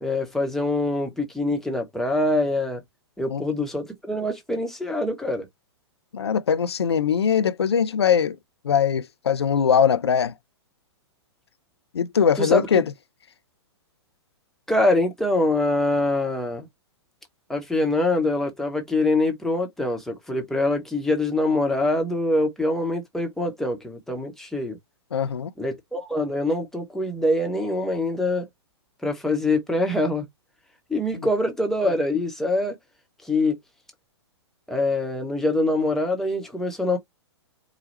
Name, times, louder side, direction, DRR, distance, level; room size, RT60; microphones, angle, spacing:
voice 1, 0.0-2.8 3.2-5.5 12.4-12.6 14.7-16.7 17.5-24.8 25.6-28.5 29.0-30.2 30.9-32.8 33.2-33.6 34.7-37.0, left 2 dB, 5° left, 1.0 m, -24 dB
voice 2, 6.1-8.4 8.6-10.3 11.9-12.8 25.1-25.5 31.2-31.3, left 7 dB, 70° left, 0.6 m, -21 dB
4.9 x 2.2 x 4.1 m
figure-of-eight pair, 110°, 14 cm